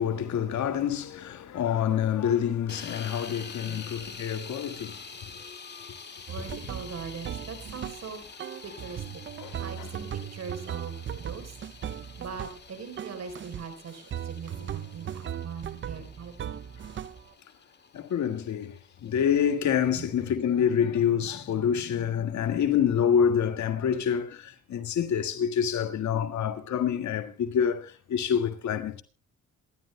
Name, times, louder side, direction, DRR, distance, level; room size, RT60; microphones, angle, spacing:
voice 1, 0.0-5.0 9.4-9.9 17.9-29.0, left 8 dB, 70° left, 1.8 m, -27 dB
sound 1, 2.7-20.6, left 5 dB, 35° left, 2.1 m, -47 dB
sound 2, 6.3-8.1 8.4-12.7 13.0-13.7 14.1-17.3, right 9 dB, 40° right, 0.6 m, -38 dB
voice 2, 6.3-8.3 8.6-9.2 9.6-11.6 12.2-16.5 17.0-17.1 19.9-20.1, right 6 dB, 55° right, 4.0 m, -41 dB
27.0 x 12.5 x 2.2 m
cardioid pair, 90°, 30 cm